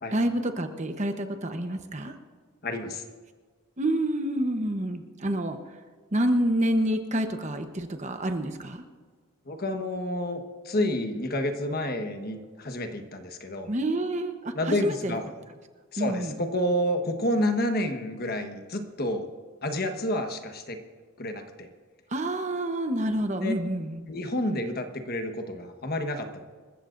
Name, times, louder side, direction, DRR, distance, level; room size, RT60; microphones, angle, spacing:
voice 1, 0.1-2.1 3.8-5.6 6.1-8.8 13.7-15.2 16.0-16.4 22.1-24.1, right 1 dB, 35° right, 7 dB, 1.0 m, -28 dB
voice 2, 2.6-3.0 9.5-13.7 14.5-15.3 15.9-19.3 19.6-20.8 21.2-21.7 23.4-23.5 24.1-26.4, left 1 dB, 45° left, 6 dB, 1.3 m, -29 dB
27.5 x 14.5 x 2.6 m, 1.5 s
head